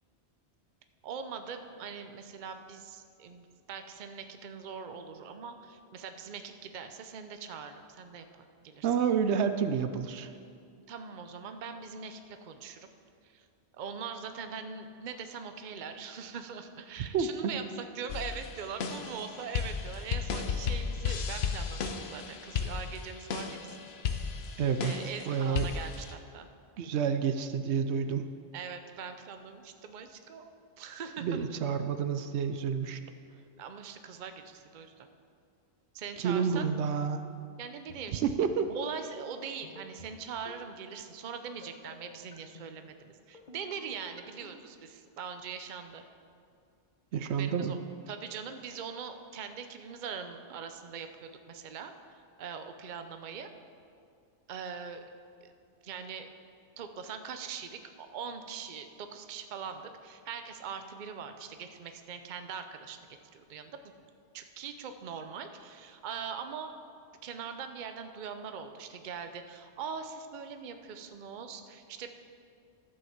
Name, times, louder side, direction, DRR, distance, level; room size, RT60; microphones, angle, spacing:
voice 1, 1.0-8.9 10.9-12.9 13.2-13.5 13.7-23.8 24.8-26.5 28.5-30.5 30.8-31.4 33.6-35.1 35.9-36.7 37.6-38.2 38.7-46.0 47.4-47.8 48.1-51.9 52.4-53.5 54.5-55.0 55.4-55.5 55.8-56.3 56.8-63.0 63.3-63.8 64.3-66.7 67.2-72.1, right 6 dB, 50° right, 8 dB, 0.7 m, -42 dB
voice 2, 8.8-10.3 17.1-17.5 24.6-25.0 25.3-25.7 26.8-28.3 31.2-33.0 36.2-37.3 38.2-38.7 47.1-47.7, right 7 dB, 80° right, 9 dB, 0.9 m, -29 dB
sound 1, 18.1-26.1, left 6 dB, 70° left, 1.0 m, -34 dB
sound 2, 37.8-38.2 38.6-38.9 39.6-40.1 40.4-40.7 41.5-41.9 42.3-42.7 43.3-43.7 44.2-44.5, left 2 dB, 45° left, 1.2 m, -50 dB
12.5 x 5.5 x 7.2 m, 2.4 s
omnidirectional pair, 1.1 m